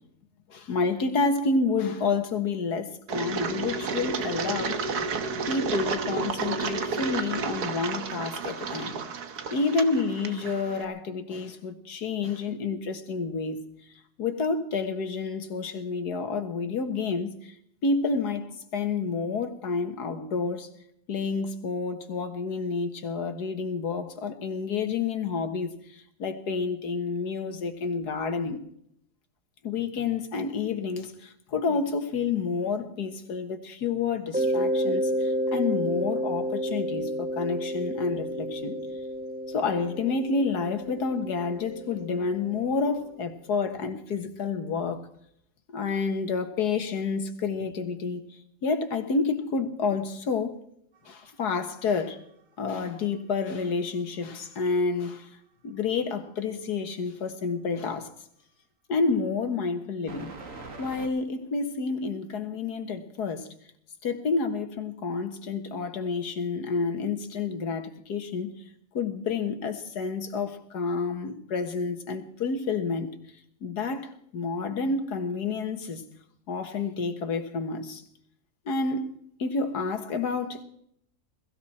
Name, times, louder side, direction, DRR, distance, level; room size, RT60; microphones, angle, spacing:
voice 1, 0.5-4.8 5.5-9.0 9.5-13.6 14.2-17.3 17.8-18.5 18.7-20.7 21.1-25.7 26.2-28.7 29.6-38.7 39.5-45.0 45.7-48.2 48.6-50.6 51.1-52.2 52.6-55.3 55.6-58.1 58.9-60.3 60.8-63.5 64.0-68.5 68.9-73.1 73.6-76.0 76.5-78.0 78.7-79.1 79.4-80.6, left 4 dB, 85° left, 2.1 m, -29 dB
Engine, 3.1-10.8, right 4 dB, 80° right, 1.8 m, -31 dB
Mallet percussion, 34.3-42.9, equal, 5° right, 1.1 m, -30 dB
sound 1, 50.9-53.7 54.0-55.1 60.1-61.1, right 3 dB, 55° right, 2.4 m, -45 dB
21.5 x 15.0 x 4.3 m
omnidirectional pair, 1.7 m